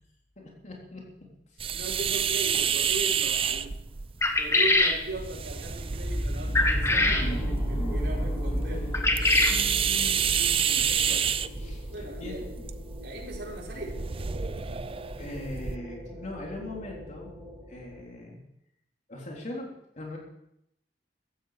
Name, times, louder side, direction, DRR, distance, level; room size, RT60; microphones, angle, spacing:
voice 1, 0.4-1.0 1.5-1.8 6.9-7.4 7.8-7.9 9.5-11.2 11.5-12.4 15.2-17.3 17.7-18.4 19.1-19.7 20.0-20.2, left 1 dB, 45° left, 3.6 m, -40 dB
sound 1, 1.6-15.8, right 8 dB, 35° right, 0.5 m, -30 dB
voice 2, 1.7-3.8 4.3-7.4 7.7-8.9 11.9-12.5 13.0-14.1, right 1 dB, 70° right, 5.5 m, -38 dB
sound 2, 4.2-5.0 6.5-7.3 8.9-9.6, left 2 dB, 15° left, 1.5 m, -23 dB
sound 3, 6.0-18.0, equal, 5° right, 5.4 m, -34 dB
15.5 x 13.5 x 5.0 m
head